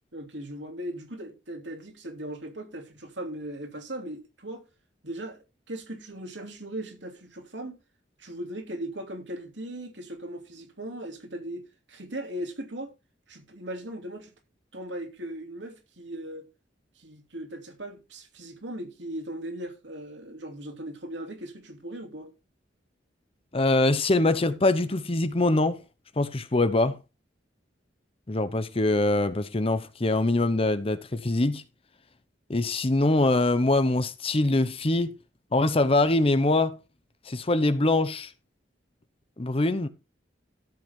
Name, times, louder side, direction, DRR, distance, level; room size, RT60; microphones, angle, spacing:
voice 1, 0.1-4.6 5.0-7.8 8.2-12.9 13.3-14.3 14.7-16.5 17.0-22.3, right 1 dB, 75° right, 3.0 m, -38 dB
voice 2, 23.5-25.8 26.2-27.0 28.3-31.6 32.5-35.1 35.5-36.8 37.3-38.3 39.4-39.9, left 2 dB, 30° left, 0.8 m, -23 dB
13.5 x 8.1 x 3.7 m
head